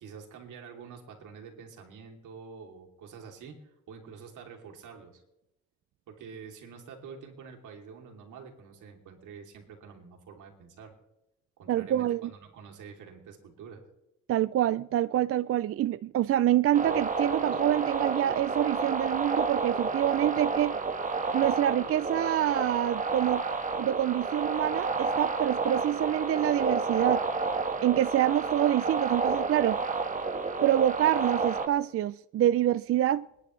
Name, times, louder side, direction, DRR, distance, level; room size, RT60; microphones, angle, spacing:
voice 1, 0.0-5.2 6.1-10.9 11.6-13.8, right 6 dB, 80° right, 3.0 m, -47 dB
voice 2, 11.7-12.3 14.3-20.8 21.3-23.4 23.8-27.2 27.8-29.8 30.6-33.3, right 12 dB, 50° right, 0.4 m, -26 dB
sound 1, 16.7-31.7, right 4 dB, 25° right, 1.5 m, -30 dB
27.5 x 10.0 x 3.2 m
cardioid pair, 90°, 30 cm